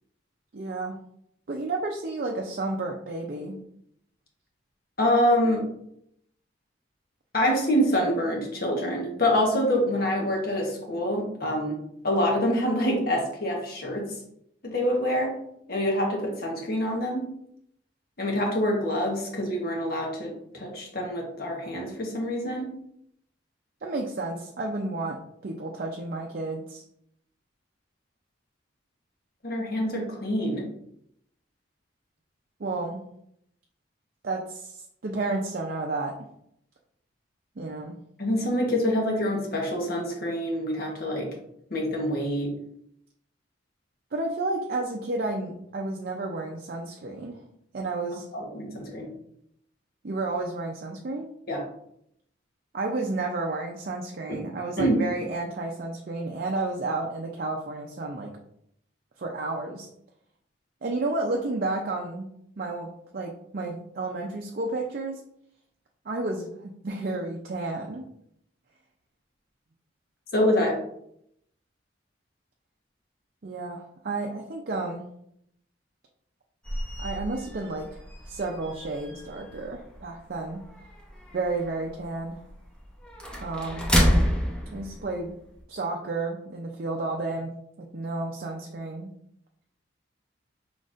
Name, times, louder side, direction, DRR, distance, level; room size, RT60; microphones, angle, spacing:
voice 1, 0.5-1.0 1.5-3.6 23.8-26.8 32.6-33.0 34.2-36.1 37.6-38.0 44.1-47.4 47.7-48.2 50.0-51.3 52.7-58.3 59.2-59.9 60.8-62.3 62.6-65.2 66.1-68.0 73.4-75.1 77.0-78.0 78.3-80.6 81.3-82.4 83.4-83.9 84.7-85.3 85.7-89.1, right 2 dB, 50° right, 1 dB, 0.5 m, -31 dB
voice 2, 5.0-5.6 7.3-11.8 12.0-14.1 14.6-15.4 15.7-17.3 18.2-22.7 29.4-30.7 38.2-41.3 41.7-42.5 48.3-49.1 51.5-51.6 54.3-54.4 54.8-55.0 70.3-70.8, equal, 55° left, -1 dB, 1.1 m, -26 dB
sound 1, 76.6-85.6, equal, 5° left, 0.8 m, -30 dB
5.2 x 3.9 x 2.5 m, 0.73 s
head